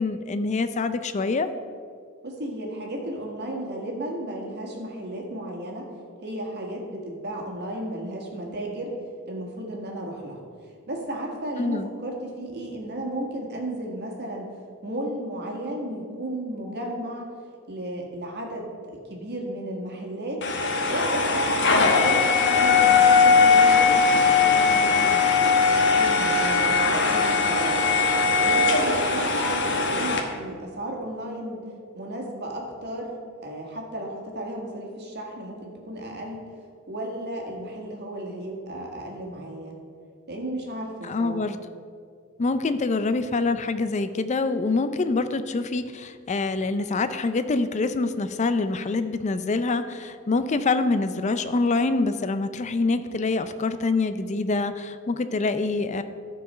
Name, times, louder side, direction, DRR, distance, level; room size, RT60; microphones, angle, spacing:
voice 1, 0.0-1.5 11.6-11.9 41.0-41.6 42.4-56.0, left 3 dB, 30° left, 11 dB, 0.4 m, -25 dB
voice 2, 2.2-5.9 6.2-8.9 9.3-10.4 10.9-14.5 14.8-17.3 17.7-20.4 20.9-25.2 25.6-27.8 28.4-31.7 31.9-36.4 36.9-39.8 40.3-41.4, right 1 dB, 50° right, 0 dB, 1.7 m, -34 dB
sound 1, 20.4-30.2, left 4 dB, 55° left, 1.0 m, -20 dB
13.0 x 4.6 x 5.5 m, 2.2 s
head